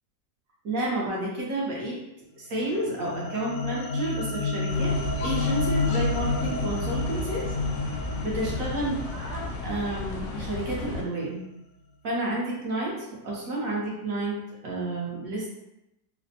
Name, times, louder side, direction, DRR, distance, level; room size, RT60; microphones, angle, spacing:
voice 1, 0.6-2.0 2.4-5.0 5.2-7.4 8.2-11.4 12.0-15.5, right 1 dB, 60° right, -4 dB, 1.1 m, -30 dB
sound 1, 2.5-11.0, left 3 dB, 65° left, 0.9 m, -30 dB
sound 2, 4.7-11.0, left 2 dB, 85° left, 1.2 m, -34 dB
4.1 x 2.0 x 2.7 m, 0.89 s
omnidirectional pair, 1.9 m